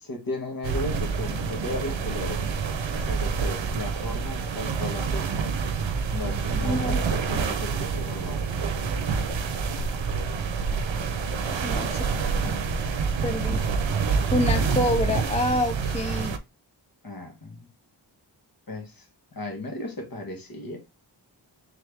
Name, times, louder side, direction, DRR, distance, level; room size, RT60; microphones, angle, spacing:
voice 1, 0.0-2.4 3.1-5.3 6.1-8.4 12.1-12.2 17.0-17.7 18.7-19.1 19.3-20.8, left 2 dB, 50° left, 1.4 m, -35 dB
sound 1, 0.6-16.4, right 5 dB, 85° right, 0.6 m, -27 dB
voice 2, 6.6-7.0 11.5-12.1 12.4-12.6 13.2-13.6 14.3-16.4, left 1 dB, 20° left, 0.3 m, -27 dB
3.5 x 3.2 x 3.4 m
wide cardioid pair, 70°, 44 cm